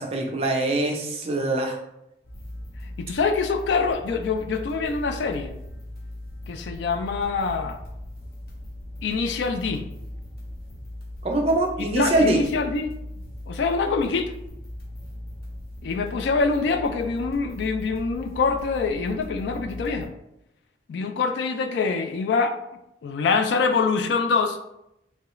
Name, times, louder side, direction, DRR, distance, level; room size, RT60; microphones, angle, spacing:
voice 1, 0.0-1.8 11.2-12.4, right 2 dB, 30° right, 1 dB, 0.4 m, -23 dB
sound 1, 2.2-20.1, left 1 dB, 50° left, 0.7 m, -39 dB
voice 2, 2.8-5.5 6.5-7.8 9.0-9.9 12.0-13.0 13.5-14.3 15.8-20.1 20.9-22.5 23.0-24.6, left 4 dB, 70° left, 6 dB, 0.3 m, -25 dB
3.0 x 2.3 x 3.0 m, 0.85 s
head